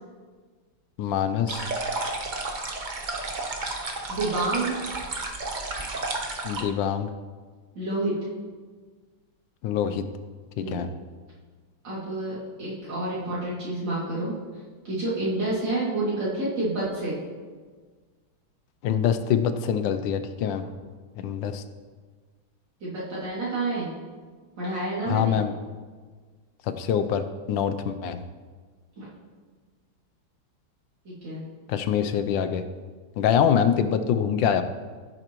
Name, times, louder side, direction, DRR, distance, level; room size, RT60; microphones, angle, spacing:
voice 1, 1.0-1.7 6.4-7.1 9.6-10.0 10.6-10.9 18.8-20.7 21.2-21.6 25.1-25.5 26.6-28.2 31.7-32.6 33.2-34.6, left 8 dB, 75° left, 9 dB, 1.3 m, -25 dB
sound 1, 1.5-6.6, right 2 dB, 40° right, 0.7 m, -32 dB
voice 2, 4.1-4.8 7.7-8.2 10.6-10.9 11.8-14.3 14.8-17.2 22.8-23.9 24.6-25.4 29.0-29.1 31.0-31.4, right 2 dB, 65° right, -9 dB, 3.2 m, -29 dB
16.0 x 7.9 x 3.0 m, 1.5 s
omnidirectional pair, 2.2 m